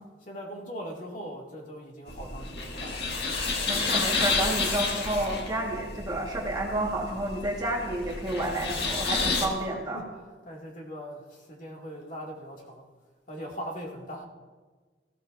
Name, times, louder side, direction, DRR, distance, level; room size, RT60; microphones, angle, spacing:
voice 1, 0.2-3.2 4.5-4.8 8.9-9.5 9.9-10.1 10.4-12.9 13.3-14.2, equal, 50° left, -2 dB, 2.4 m, -40 dB
sound 1, 2.1-9.5, left 4 dB, 65° left, 1.7 m, -30 dB
voice 2, 3.7-10.0, right 1 dB, 20° right, -2 dB, 1.6 m, -30 dB
18.5 x 15.5 x 2.7 m, 1.4 s
head